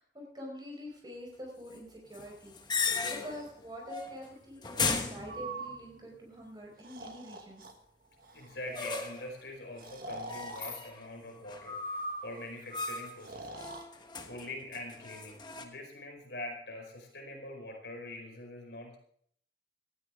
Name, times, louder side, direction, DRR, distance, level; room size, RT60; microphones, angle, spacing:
voice 1, 0.0-2.6 3.1-7.6, equal, 25° right, 0 dB, 5.0 m, -45 dB
sound 1, 2.1-3.5 3.9-4.3 4.6-5.9 8.7-9.3 10.3-11.1 11.5-12.1 12.7-13.2 13.5-15.6, left 4 dB, 25° left, 1.2 m, -36 dB
Breathing, 5.3-5.8 6.8-7.7 8.2-8.6 9.8-10.8 11.6-12.5 13.2-13.9, right 1 dB, 50° right, 1.6 m, -42 dB
voice 2, 8.3-13.7 14.3-19.0, left 1 dB, 75° left, 1 dB, 4.8 m, -44 dB
18.0 x 13.5 x 3.7 m, 0.62 s
head